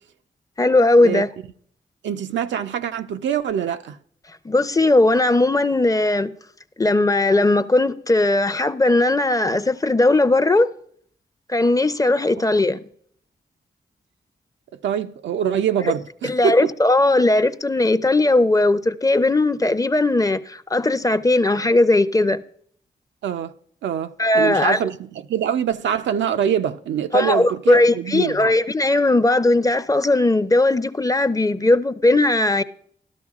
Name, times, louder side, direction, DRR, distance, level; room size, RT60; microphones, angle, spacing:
voice 1, 0.6-1.3 4.4-6.3 6.8-10.7 11.5-12.8 16.2-22.4 24.2-24.8 27.1-32.6, left 2 dB, 20° left, 0.5 m, -18 dB
voice 2, 2.0-4.0 14.8-16.7 23.2-23.5 23.8-28.5, right 8 dB, 90° right, 0.4 m, -24 dB
13.0 x 12.5 x 2.4 m
cardioid pair, 45°, 18 cm